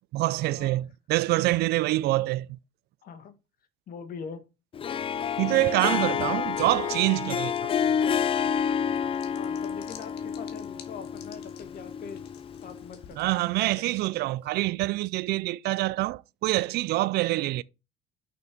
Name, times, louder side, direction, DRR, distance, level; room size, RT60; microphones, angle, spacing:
voice 1, 0.1-2.6 5.4-7.7 13.2-17.6, right 18 dB, 75° right, 0.4 m, -26 dB
voice 2, 3.0-3.3 3.9-4.4 9.3-12.2 12.6-13.9, left 6 dB, 60° left, 1.7 m, -43 dB
Harp, 4.7-13.0, left 7 dB, 35° left, 0.4 m, -29 dB
sound 1, 6.5-14.5, left 8 dB, 75° left, 1.6 m, -54 dB
6.1 x 6.1 x 5.2 m
cardioid pair, 110°, 17 cm